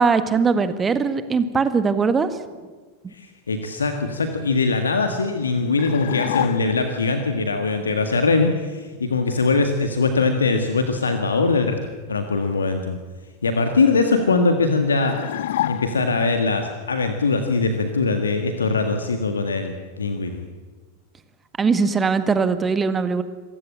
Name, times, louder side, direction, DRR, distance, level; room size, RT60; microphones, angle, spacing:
voice 1, 0.0-2.3 21.6-23.2, right 5 dB, 20° right, 11 dB, 1.6 m, -20 dB
voice 2, 3.1-11.8 12.1-13.0 13.4-15.2 15.7-20.5, left 3 dB, 70° left, 6 dB, 1.8 m, -21 dB
sound 1, 5.8-7.0 15.0-16.3, left 13 dB, 55° left, 0.6 m, -28 dB
27.0 x 15.5 x 8.7 m, 1.4 s
figure-of-eight pair, 90°, 0 cm